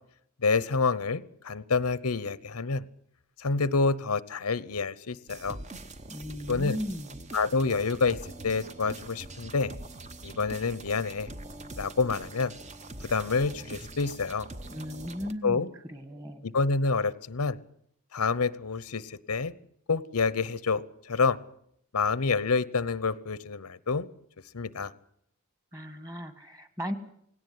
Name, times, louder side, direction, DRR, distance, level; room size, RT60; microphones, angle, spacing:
voice 1, 0.4-2.9 3.4-5.6 6.5-6.8 7.3-8.2 8.4-9.7 10.2-11.3 11.8-12.5 13.1-14.5 15.4-15.7 16.4-17.6 18.1-19.5 19.9-21.4 21.9-24.1 24.5-24.9, left 4 dB, 90° left, 18 dB, 0.9 m, -28 dB
sound 1, 5.3-15.3, right 2 dB, 30° right, 1.0 m, -43 dB
voice 2, 6.1-7.2 14.7-15.6 15.9-16.4 25.7-27.0, equal, 15° right, 11 dB, 1.7 m, -36 dB
19.0 x 17.5 x 9.6 m, 0.71 s
head